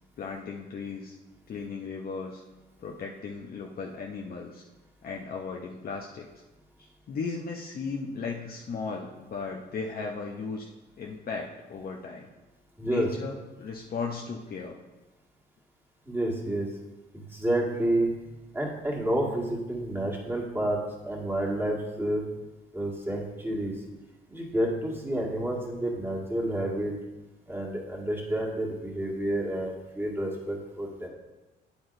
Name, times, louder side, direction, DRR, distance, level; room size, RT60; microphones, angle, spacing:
voice 1, 0.2-1.2 1.5-2.4 2.8-4.6 5.0-6.3 7.1-10.7 11.0-12.3 12.9-14.8, left 4 dB, 50° left, 0 dB, 0.8 m, -36 dB
voice 2, 12.8-13.1 16.1-16.7 17.1-18.1 18.5-22.2 22.7-23.7 24.3-26.9 27.5-31.1, right 1 dB, 10° right, -3 dB, 2.0 m, -29 dB
8.6 x 8.0 x 2.7 m, 1.1 s
cardioid pair, 85°, 20 cm